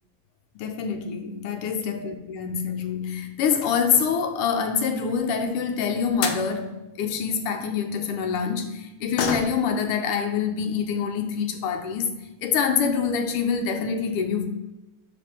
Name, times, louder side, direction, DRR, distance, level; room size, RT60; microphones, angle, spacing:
voice 1, 0.5-12.1 12.4-14.5, left 6 dB, 90° left, 1.6 m, -26 dB
sound 1, 2.5-2.9 3.4-4.3 5.8-5.9 6.2-6.5 9.1-9.8 10.2-10.3 10.7-10.8 11.6-11.7 12.0-12.1 12.6-12.9 13.2-13.3 13.6-13.7, left 6 dB, 70° left, 1.2 m, -31 dB
5.2 x 4.3 x 4.3 m
omnidirectional pair, 2.4 m